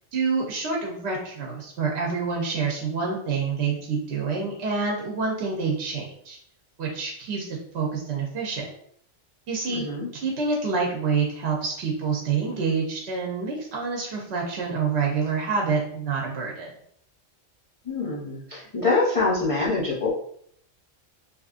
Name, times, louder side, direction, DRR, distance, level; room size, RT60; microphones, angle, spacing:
voice 1, 0.1-6.4 6.8-8.7 9.5-9.8 10.1-16.7, right 5 dB, 65° right, -1 dB, 0.8 m, -27 dB
voice 2, 9.7-10.1 17.9-20.1, left 3 dB, 45° left, -5 dB, 0.4 m, -25 dB
2.9 x 2.5 x 2.4 m, 0.65 s
omnidirectional pair, 1.3 m